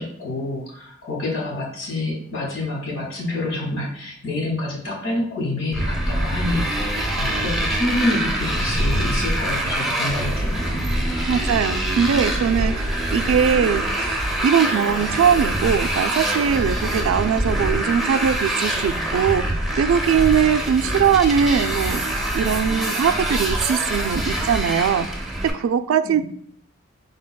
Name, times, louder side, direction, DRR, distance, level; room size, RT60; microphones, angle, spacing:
voice 1, 0.0-6.6 7.2-10.8 26.0-26.2, left 2 dB, 85° left, -2 dB, 1.7 m, -27 dB
Motorcycle, 5.7-25.5, right 1 dB, ahead, 0.7 m, -24 dB
voice 2, 11.3-22.0 22.3-25.3 25.5-26.2, right 7 dB, 90° right, 11 dB, 0.3 m, -21 dB
5.0 x 3.8 x 2.2 m, 0.63 s
head